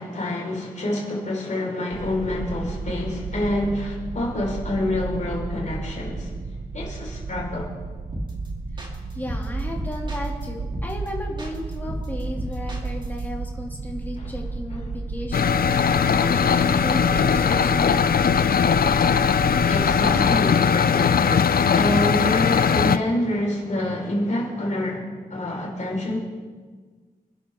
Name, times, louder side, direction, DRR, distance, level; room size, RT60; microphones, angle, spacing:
voice 1, 0.0-6.3 6.7-7.7 14.2-14.3 19.7-25.0 25.3-26.2, left 1 dB, 50° left, -3 dB, 4.8 m, -27 dB
sound 1, 1.9-20.4, right 4 dB, 65° right, 1.0 m, -33 dB
sound 2, 8.1-8.5 8.8-10.4 10.7-11.1 11.4-13.2, right 1 dB, 30° right, 3.0 m, -32 dB
voice 2, 9.1-18.0, left 1 dB, 10° left, -2 dB, 2.7 m, -35 dB
sound 3, 15.3-23.0, left 7 dB, 75° left, 0.6 m, -19 dB
27.0 x 11.5 x 3.7 m, 1.5 s
wide cardioid pair, 140°, 16 cm